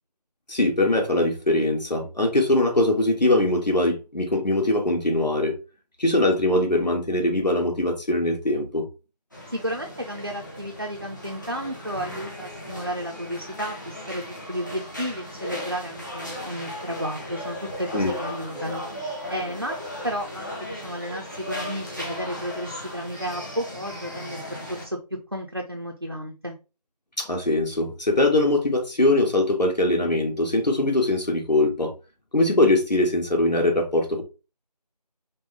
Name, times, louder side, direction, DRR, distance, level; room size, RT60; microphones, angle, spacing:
voice 1, 0.5-5.6 6.0-8.9 17.9-18.1 27.2-31.9 32.3-34.2, left 1 dB, 80° left, 1.6 m, -22 dB
sound 1, 9.3-24.9, equal, 30° left, 1.0 m, -36 dB
voice 2, 9.5-14.2 14.5-19.8 20.0-25.0 25.3-26.6, equal, 40° right, 0.5 m, -32 dB
5.2 x 2.2 x 3.3 m
figure-of-eight pair, 175°, 21 cm